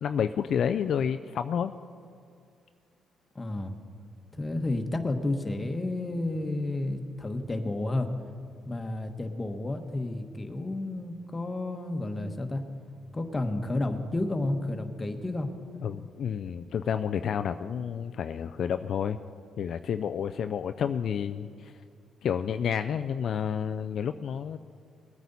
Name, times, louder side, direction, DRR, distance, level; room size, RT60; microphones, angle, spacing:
voice 1, 0.0-1.7 15.8-19.2 19.6-21.7 22.2-24.6, left 8 dB, 65° left, 9 dB, 0.4 m, -30 dB
voice 2, 3.3-3.7 4.4-8.1 8.6-12.6 13.1-15.5, left 2 dB, 25° left, 6 dB, 1.2 m, -31 dB
20.5 x 9.3 x 4.1 m, 2.3 s
cardioid pair, 90°, 0 cm